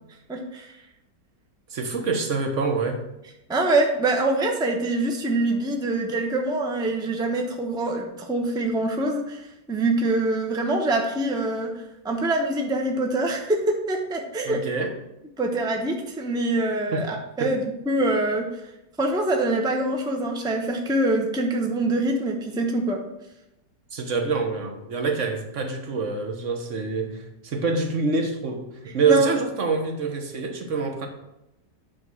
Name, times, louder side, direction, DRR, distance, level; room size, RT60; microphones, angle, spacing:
voice 1, 0.3-0.7 3.5-11.7 12.0-14.6 15.4-18.4 19.0-23.0 29.0-29.3, right 2 dB, 5° right, 2 dB, 0.4 m, -24 dB
voice 2, 1.7-3.0 14.4-14.9 16.9-17.1 17.4-17.5 23.9-31.1, right 4 dB, 50° right, 3 dB, 1.3 m, -26 dB
8.9 x 3.4 x 6.2 m, 0.90 s
omnidirectional pair, 1.8 m